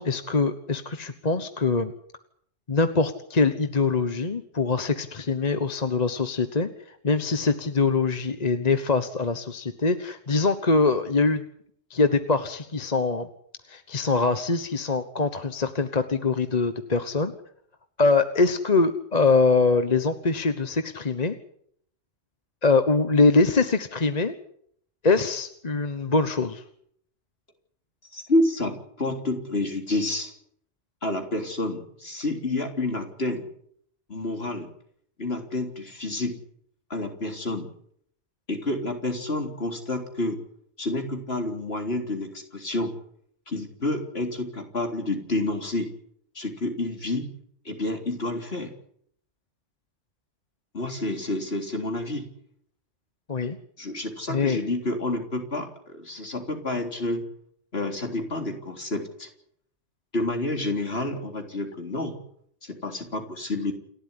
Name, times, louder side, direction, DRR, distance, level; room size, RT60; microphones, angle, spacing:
voice 1, 0.0-1.9 2.7-6.7 7.0-11.4 11.9-13.3 13.7-17.3 18.0-21.3 22.6-24.3 25.0-26.6 53.3-53.6 54.3-54.6, left 3 dB, 35° left, 9 dB, 1.2 m, -23 dB
voice 2, 28.1-30.3 31.0-33.5 34.1-34.7 35.2-36.4 36.9-37.7 38.5-40.4 40.8-43.0 43.5-45.9 46.4-47.3 47.7-48.7 50.7-52.3 53.8-57.3 57.7-59.3 60.1-62.1 62.6-63.7, left 2 dB, 55° left, 4 dB, 3.9 m, -29 dB
29.0 x 12.5 x 9.8 m, 0.67 s
omnidirectional pair, 1.3 m